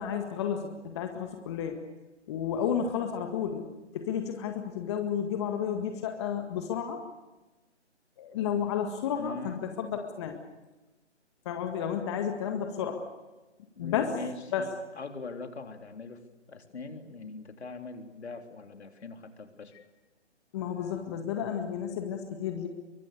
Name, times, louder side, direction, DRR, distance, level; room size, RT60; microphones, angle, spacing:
voice 1, 0.0-1.8 2.3-3.7 3.9-7.0 8.2-10.4 11.5-13.0 13.8-14.2 14.5-14.7 20.5-22.7, left 8 dB, 25° left, 5 dB, 1.8 m, -32 dB
voice 2, 9.1-9.6 13.7-16.2 16.5-19.7, left 4 dB, 65° left, 6 dB, 3.7 m, -41 dB
27.0 x 24.0 x 6.7 m, 1.1 s
hypercardioid pair, 155°, 35 cm